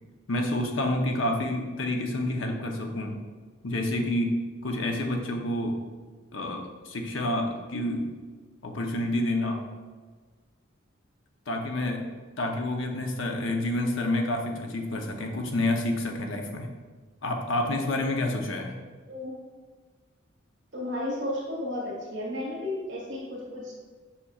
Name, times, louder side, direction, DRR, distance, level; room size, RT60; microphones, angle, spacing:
voice 1, 0.3-3.2 3.6-5.8 6.3-8.1 8.6-9.6 11.5-12.1 12.4-16.7 17.2-18.8, left 1 dB, 75° left, 3 dB, 0.8 m, -28 dB
voice 2, 20.7-23.7, left 1 dB, 60° right, -4 dB, 1.7 m, -33 dB
7.0 x 5.8 x 2.4 m, 1.5 s
head